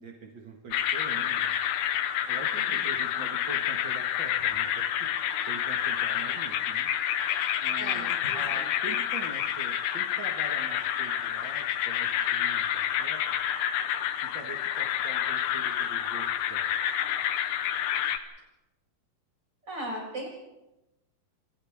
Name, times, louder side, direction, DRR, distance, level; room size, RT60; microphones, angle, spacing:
voice 1, 0.0-1.6 2.3-5.1 5.5-6.9 7.6-13.4 14.3-16.7, right 4 dB, 40° right, 0 dB, 1.7 m, -44 dB
sound 1, 0.7-18.2, left 10 dB, 85° left, 3.2 m, -29 dB
voice 2, 7.8-8.7 19.6-20.3, right 1 dB, 25° right, -3 dB, 7.5 m, -38 dB
29.0 x 27.0 x 3.7 m, 0.99 s
omnidirectional pair, 4.8 m